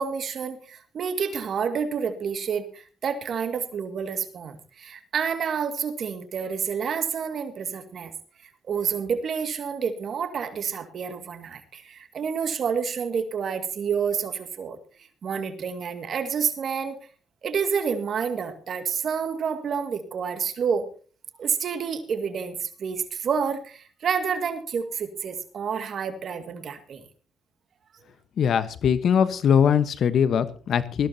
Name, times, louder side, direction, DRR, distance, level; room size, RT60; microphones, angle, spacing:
voice 1, 0.0-8.1 8.6-14.8 15.2-17.0 17.4-20.9 21.4-27.0, right 6 dB, 60° right, 8 dB, 2.1 m, -29 dB
voice 2, 28.4-31.1, left 8 dB, 65° left, 12 dB, 1.1 m, -21 dB
20.0 x 15.5 x 2.8 m, 0.38 s
cardioid pair, 90°, 0 cm